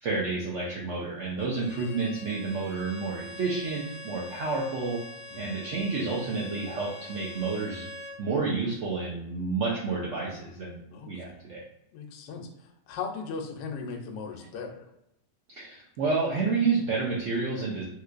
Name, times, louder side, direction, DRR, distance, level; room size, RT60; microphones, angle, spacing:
voice 1, 0.0-5.0 5.3-7.8 8.2-11.6 15.5-17.8, right 4 dB, 75° right, -5 dB, 0.7 m, -30 dB
Bowed string instrument, 1.4-8.2, left 1 dB, 55° left, 0.4 m, -44 dB
voice 2, 10.9-11.5 11.9-14.8, left 5 dB, 75° left, 3 dB, 1.2 m, -38 dB
3.2 x 3.1 x 2.4 m, 0.83 s
omnidirectional pair, 1.9 m